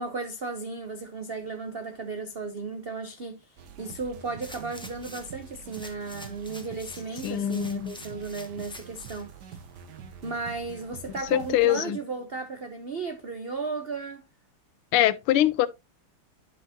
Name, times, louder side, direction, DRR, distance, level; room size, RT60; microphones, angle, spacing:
voice 1, 0.0-9.3 10.2-14.2, right 3 dB, 85° right, 0.5 m, -35 dB
sound 1, 3.6-11.7, right 6 dB, 60° right, 1.4 m, -46 dB
sound 2, 4.4-5.4 5.7-9.2 9.7-9.8, left 1 dB, 5° left, 0.4 m, -47 dB
voice 2, 7.2-7.9 11.3-12.0 14.9-15.7, left 13 dB, 85° left, 1.5 m, -23 dB
10.5 x 5.6 x 2.7 m
omnidirectional pair, 2.4 m